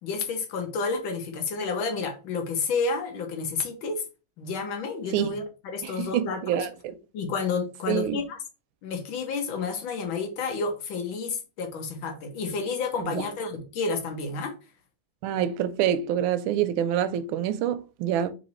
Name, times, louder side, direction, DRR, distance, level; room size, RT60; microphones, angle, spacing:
voice 1, 0.0-4.0 4.4-5.4 5.7-6.7 7.1-8.4 8.8-14.5, left 4 dB, 90° left, 1.7 m, -30 dB
voice 2, 5.8-6.9 7.9-8.2 13.0-13.2 15.2-18.3, right 10 dB, 85° right, 1.4 m, -26 dB
4.0 x 2.9 x 4.2 m
omnidirectional pair, 2.1 m